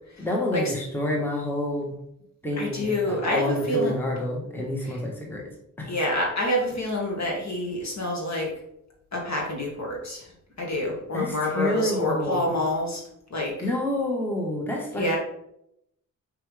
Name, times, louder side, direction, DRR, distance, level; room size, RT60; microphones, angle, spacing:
voice 1, 0.2-1.9 2.4-5.4 5.8-6.0 11.1-12.5 13.6-15.2, left 1 dB, 5° left, -2 dB, 1.5 m, -28 dB
voice 2, 2.6-3.9 4.8-5.0 5.8-8.5 9.1-10.3 10.6-13.0 13.3-13.7 14.9-15.2, left 1 dB, 50° left, -1 dB, 2.3 m, -27 dB
5.9 x 4.7 x 3.4 m, 0.79 s
cardioid pair, 65°, 35 cm